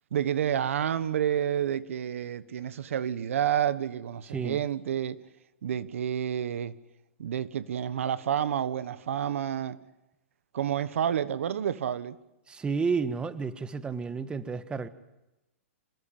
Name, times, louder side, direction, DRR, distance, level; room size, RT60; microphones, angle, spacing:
voice 1, 0.1-5.2 5.6-6.7 7.2-9.8 10.5-12.2, right 9 dB, 75° right, 1.4 m, -29 dB
voice 2, 4.3-4.6 12.5-14.9, right 5 dB, 15° right, 1.5 m, -31 dB
27.0 x 19.0 x 9.0 m
hypercardioid pair, 130°, 7 cm